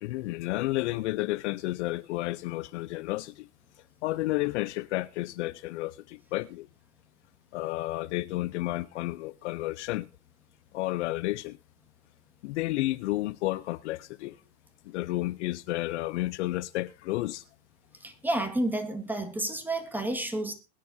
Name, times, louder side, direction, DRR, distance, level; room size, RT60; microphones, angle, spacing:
voice 1, 0.0-3.5 4.0-6.7 7.5-10.1 10.7-11.6 12.4-14.4 14.8-17.4, left 18 dB, 55° left, 0.7 m, -31 dB
voice 2, 18.0-20.5, right 1 dB, 5° right, 1.7 m, -30 dB
21.5 x 10.5 x 2.7 m
hypercardioid pair, 135°, 42 cm